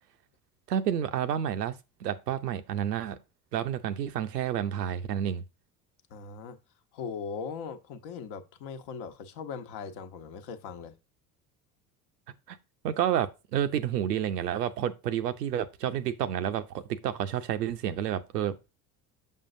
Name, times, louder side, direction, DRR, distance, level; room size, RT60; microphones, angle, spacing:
voice 1, 0.7-1.7 2.0-3.2 3.5-5.4 12.5-12.6 12.8-18.7, right 10 dB, 90° right, 0.7 m, -30 dB
voice 2, 6.1-6.6 6.9-10.9, left 6 dB, 60° left, 1.0 m, -39 dB
6.6 x 5.5 x 2.6 m
hypercardioid pair, 70°, 47 cm